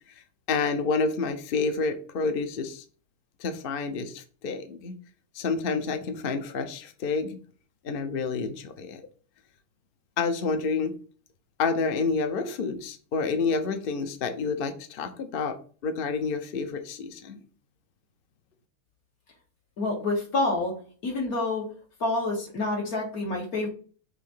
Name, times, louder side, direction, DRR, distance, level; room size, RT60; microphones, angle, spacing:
voice 1, 0.5-2.8 3.4-5.0 5.3-7.4 7.8-9.0 10.2-10.9 11.6-15.5 15.8-17.4, left 4 dB, 50° left, 7 dB, 0.7 m, -29 dB
voice 2, 19.8-21.7 22.0-23.7, left 2 dB, 75° left, -1 dB, 2.1 m, -28 dB
6.3 x 2.7 x 5.5 m, 0.41 s
omnidirectional pair, 1.6 m